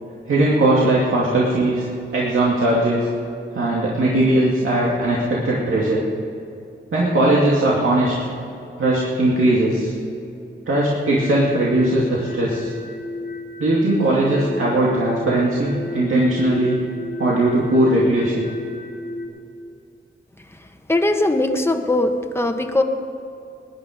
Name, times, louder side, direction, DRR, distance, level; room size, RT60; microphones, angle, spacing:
voice 1, 0.3-1.8 2.1-3.1 3.5-6.0 6.9-8.2 8.8-9.9 10.7-12.7 13.6-16.8 17.2-18.5, right 1 dB, 90° right, -5 dB, 2.3 m, -19 dB
sound 1, 11.0-19.3, left 2 dB, 75° left, 2.4 m, -33 dB
voice 2, 20.9-22.8, left 2 dB, 10° left, 5 dB, 1.2 m, -20 dB
20.5 x 10.5 x 5.1 m, 2.6 s
wide cardioid pair, 75°, 21 cm